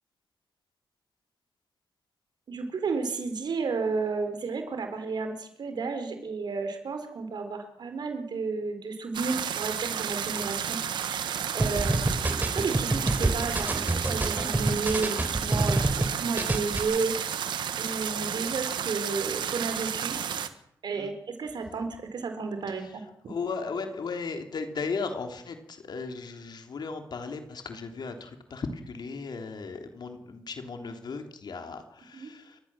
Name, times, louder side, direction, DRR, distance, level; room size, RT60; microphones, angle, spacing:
voice 1, 2.5-11.2 11.5-17.4 17.8-20.2 20.8-23.0 32.1-32.3, right 4 dB, 70° right, 7 dB, 4.5 m, -32 dB
sound 1, 9.1-20.5, right 8 dB, 85° right, 1.4 m, -32 dB
sound 2, 11.6-16.1 16.4-16.8, right 2 dB, 25° right, 3.5 m, -27 dB
voice 2, 23.3-32.6, left 4 dB, 70° left, 6 dB, 3.4 m, -36 dB
29.5 x 14.0 x 7.6 m, 0.78 s
cardioid pair, 55°, 8 cm